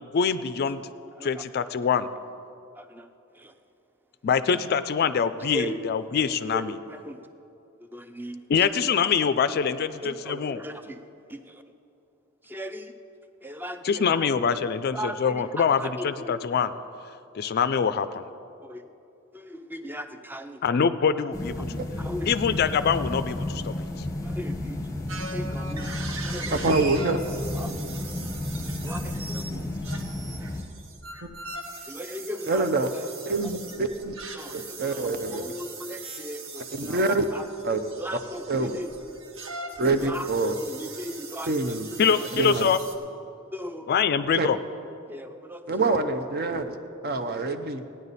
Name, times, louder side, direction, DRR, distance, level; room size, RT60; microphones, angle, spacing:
voice 1, 0.1-0.8 1.2-2.1 4.2-6.7 8.5-10.6 13.8-15.8 16.0-16.7 17.4-18.1 20.6-21.8 22.3-23.7 42.0-42.8 43.9-44.6, left 6 dB, 50° left, 13 dB, 0.4 m, -24 dB
voice 2, 1.1-1.5 2.7-3.6 5.5-5.8 6.5-7.2 7.8-8.4 10.0-11.0 11.3-11.6 12.4-12.9 13.4-14.5 14.9-16.4 18.0-18.2 18.6-18.9 19.3-20.6 21.6-22.7 24.2-24.8 25.3-25.9 26.2-27.2 27.5-28.1 28.8-29.7 31.9-32.9 33.3-33.5 34.3-37.5 38.0-38.9 40.0-42.6 43.5-43.9 45.1-45.6, equal, 10° right, 8 dB, 0.5 m, -38 dB
sound 1, 21.3-30.6, left 1 dB, 15° left, 0.8 m, -32 dB
sound 2, 25.1-42.9, right 3 dB, 70° right, 1.1 m, -40 dB
voice 3, 26.5-27.2 32.5-32.9 33.3-34.1 34.5-35.5 36.8-37.3 37.6-37.8 38.5-38.8 39.8-40.5 41.5-41.9 42.3-42.7 44.3-44.5 45.7-46.8 47.0-47.8, right 3 dB, 50° right, 8 dB, 0.6 m, -25 dB
16.0 x 9.9 x 4.1 m, 2.7 s
head